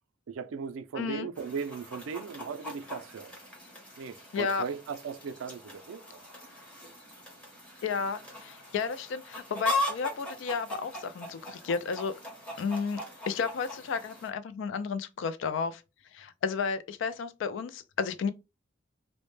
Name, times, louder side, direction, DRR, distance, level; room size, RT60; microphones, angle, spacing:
voice 1, 0.3-3.4 4.0-6.2, right 6 dB, 90° right, 0.4 m, -38 dB
voice 2, 1.0-1.3 4.3-4.6 7.8-12.1 12.6-15.8 16.1-18.3, left 5 dB, 70° left, 0.3 m, -32 dB
Chicken rooster, 1.4-14.3, left 2 dB, 5° left, 0.8 m, -39 dB
2.1 x 2.0 x 3.0 m
head